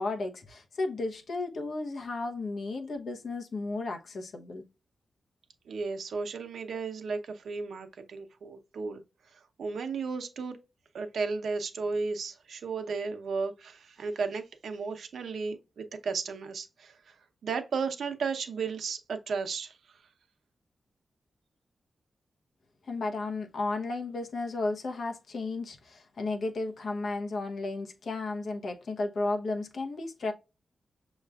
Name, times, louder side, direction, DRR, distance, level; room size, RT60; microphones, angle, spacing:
voice 1, 0.0-4.6 22.8-30.3, left 3 dB, 60° left, 1.0 m, -33 dB
voice 2, 5.7-9.0 9.6-10.6 10.9-16.9 17.4-19.7, right 4 dB, 85° right, 0.8 m, -34 dB
6.5 x 3.0 x 2.4 m
wide cardioid pair, 155°, 0 cm